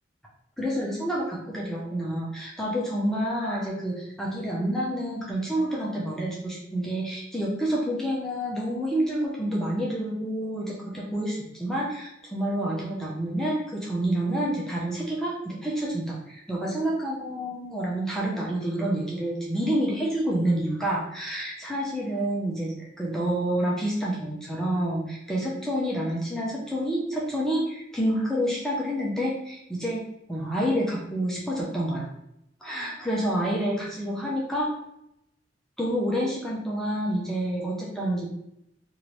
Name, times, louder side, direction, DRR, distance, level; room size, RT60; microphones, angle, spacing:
voice 1, 0.6-30.0 30.3-32.1 32.6-34.7 35.8-38.3, right 1 dB, 5° left, -5 dB, 0.5 m, -28 dB
3.0 x 2.5 x 3.1 m, 0.79 s
head